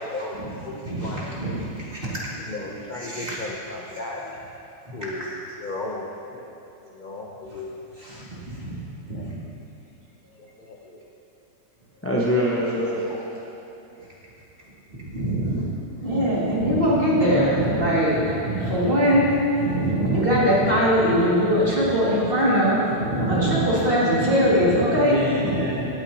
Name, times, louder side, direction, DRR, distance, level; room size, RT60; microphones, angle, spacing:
voice 1, 0.0-1.4 2.4-4.2 4.9-5.3 5.6-6.5 6.8-7.7 9.1-9.3 10.4-11.0 13.1-13.3, left 2 dB, 40° left, -2 dB, 0.7 m, -35 dB
voice 2, 0.8-2.4 3.0-3.4 4.9-5.0 8.0-8.3 8.6-9.3 15.0-15.6 15.9-25.8, equal, 30° right, -7 dB, 2.5 m, -22 dB
voice 3, 11.9-13.0 24.9-25.9, equal, 10° left, -5 dB, 0.9 m, -25 dB
17.5 x 9.0 x 2.9 m, 2.9 s
omnidirectional pair, 1.8 m